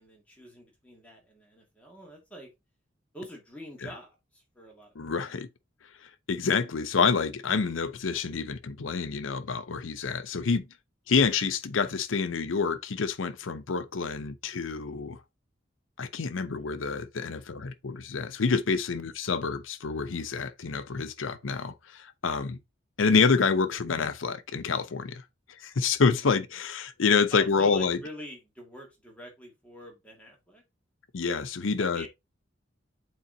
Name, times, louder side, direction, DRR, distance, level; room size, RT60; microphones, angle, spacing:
voice 1, 0.0-2.5 3.1-5.1 27.3-30.6 31.8-32.1, equal, 5° left, 1.9 m, -45 dB
voice 2, 5.0-5.5 6.0-10.7 11.1-15.2 16.0-22.6 23.0-25.2 25.6-28.0 31.1-32.1, left 5 dB, 85° left, 0.6 m, -27 dB
8.5 x 4.0 x 2.7 m
head